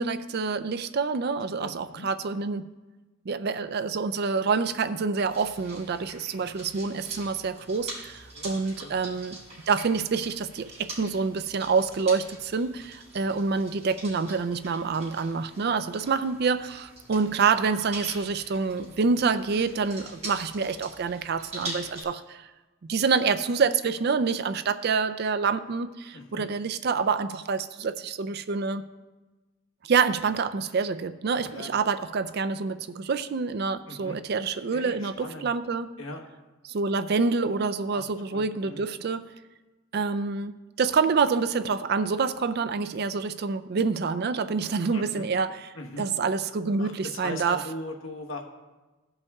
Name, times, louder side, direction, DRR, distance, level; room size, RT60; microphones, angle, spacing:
voice 1, 0.0-2.7 3.3-9.4 9.7-22.5 22.9-28.8 29.8-35.9 36.6-39.3 39.9-45.7 46.0-47.6, right 5 dB, 50° right, 12 dB, 0.4 m, -27 dB
voice 2, 1.5-2.1 8.3-9.2 26.1-26.5 31.5-31.7 33.8-34.2 34.7-35.5 36.0-36.2 37.9-38.8 44.9-45.3 45.7-46.0 46.8-48.4, left 2 dB, 70° left, 2 dB, 1.1 m, -40 dB
sound 1, 5.2-22.0, right 2 dB, 30° right, 3.3 m, -43 dB
15.5 x 5.4 x 3.5 m, 1.2 s
head